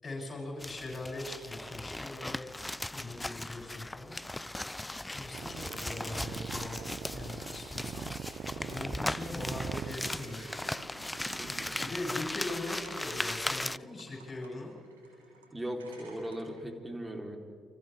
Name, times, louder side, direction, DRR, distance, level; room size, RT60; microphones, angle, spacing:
voice 1, 0.0-2.5 2.9-4.1 5.1-6.8 7.1-8.1 8.5-10.4 11.8-14.7, left 2 dB, 35° left, -3 dB, 7.6 m, -40 dB
sound 1, 0.6-13.8, left 1 dB, 15° left, 0.4 m, -38 dB
sound 2, 5.3-12.0, right 8 dB, 55° right, 0.4 m, -43 dB
sound 3, 5.6-16.6, right 3 dB, 90° right, 3.8 m, -57 dB
voice 2, 11.4-11.7 15.5-17.4, equal, 15° right, 2 dB, 4.1 m, -38 dB
29.5 x 24.5 x 3.7 m, 2.3 s
hypercardioid pair, 45°, 0 cm